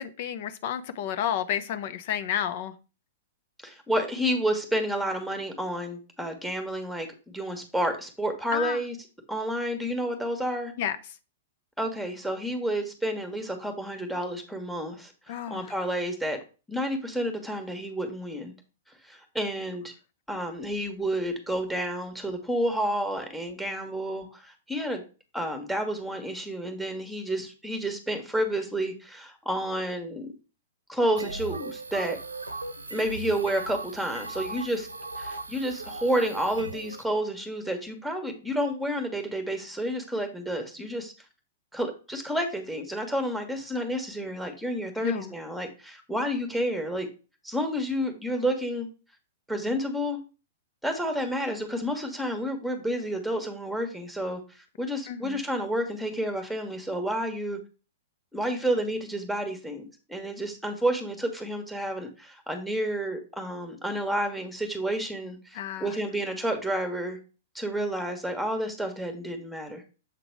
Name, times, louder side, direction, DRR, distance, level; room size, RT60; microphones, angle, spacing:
voice 1, 0.0-2.7 8.5-8.8 10.8-11.0 15.3-15.6 45.0-45.3 55.1-55.4 65.5-65.9, left 10 dB, 50° left, 11 dB, 0.8 m, -31 dB
voice 2, 3.6-9.0 9.3-10.7 11.8-16.4 16.7-18.5 19.0-19.9 20.3-25.0 25.3-30.3 30.9-32.2 32.9-34.9 35.2-41.1 41.7-47.1 47.4-48.9 49.5-50.2 50.8-57.6 58.3-67.2 67.5-69.9, right 1 dB, ahead, 6 dB, 1.6 m, -30 dB
sound 1, 31.2-37.0, right 3 dB, 85° right, 0.7 m, -38 dB
7.4 x 3.8 x 4.7 m, 0.33 s
figure-of-eight pair, 105°, 0 cm